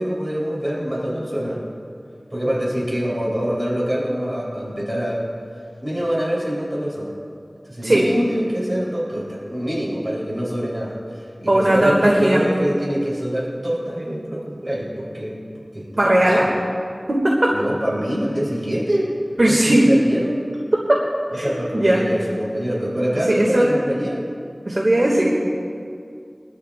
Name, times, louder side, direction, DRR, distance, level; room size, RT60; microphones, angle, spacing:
voice 1, 0.0-1.6 2.3-5.3 5.8-7.1 7.7-15.9 16.3-16.5 17.5-19.2 19.5-20.5 21.3-24.2, equal, 30° right, -5 dB, 3.6 m, -25 dB
voice 2, 11.5-12.4 16.0-16.5 17.1-17.2 19.4-19.9 21.3-21.4 21.7-22.0 23.3-23.7 24.7-25.6, right 1 dB, 60° right, -4 dB, 2.0 m, -17 dB
23.5 x 13.0 x 2.5 m, 2.3 s
wide cardioid pair, 45°, 0 cm